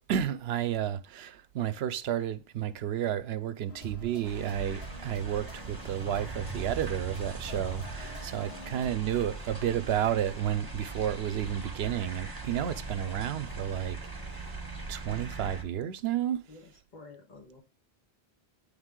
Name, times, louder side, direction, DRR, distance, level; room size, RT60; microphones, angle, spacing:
voice 1, 0.0-14.0 14.3-14.6 14.9-16.4, right 10 dB, 80° right, 0.8 m, -31 dB
sound 1, 3.7-8.9, right 2 dB, 75° left, 2.2 m, -45 dB
sound 2, 4.2-15.6, right 3 dB, 20° right, 1.1 m, -40 dB
voice 2, 8.3-8.9 16.5-17.6, left 4 dB, 45° left, 1.7 m, -51 dB
8.8 x 3.5 x 3.6 m
omnidirectional pair, 1.0 m